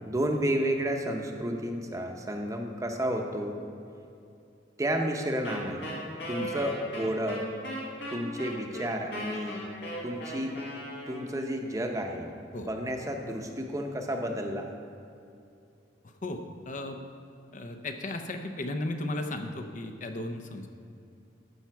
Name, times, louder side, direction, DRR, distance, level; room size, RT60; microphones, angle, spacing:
voice 1, 0.1-3.6 4.8-5.9 6.3-7.5 8.1-9.6 10.0-10.6 11.1-12.3 12.6-14.7, equal, 20° right, 3 dB, 0.8 m, -31 dB
Wind instrument woodwind instrument, 5.4-11.5, equal, 70° left, 2.1 m, -38 dB
voice 2, 16.0-17.0 17.5-20.7, left 1 dB, 45° left, 5 dB, 0.7 m, -35 dB
13.5 x 5.7 x 4.6 m, 2.6 s
head